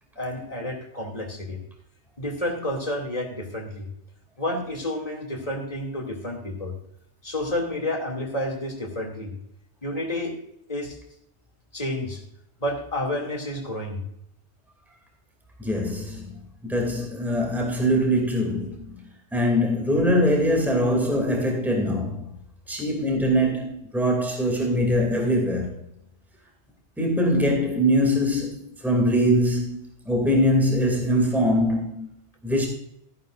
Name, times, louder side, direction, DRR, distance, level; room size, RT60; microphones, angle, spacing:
voice 1, 0.2-1.6 2.2-3.9 4.4-6.7 7.2-9.3 9.8-10.3 10.7-11.0 11.7-12.2 12.6-14.0, left 1 dB, 30° left, 2.6 m, -30 dB
voice 2, 15.6-19.0 19.3-22.3 22.7-25.8 27.0-29.8 30.1-32.1 32.4-32.7, equal, ahead, 2.5 m, -23 dB
14.0 x 11.0 x 2.5 m
omnidirectional pair, 1.2 m